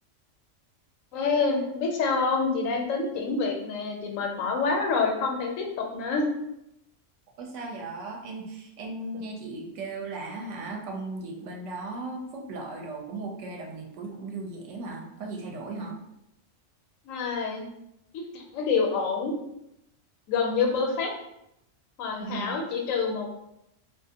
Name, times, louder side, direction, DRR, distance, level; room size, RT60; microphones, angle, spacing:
voice 1, 1.1-6.3 17.0-17.7 18.1-19.3 20.3-21.1 22.0-23.3, left 4 dB, 85° left, 2 dB, 1.0 m, -27 dB
voice 2, 7.4-16.0 22.2-22.6, right 3 dB, 70° right, 1 dB, 0.9 m, -37 dB
2.4 x 2.4 x 2.7 m, 0.84 s
omnidirectional pair, 1.3 m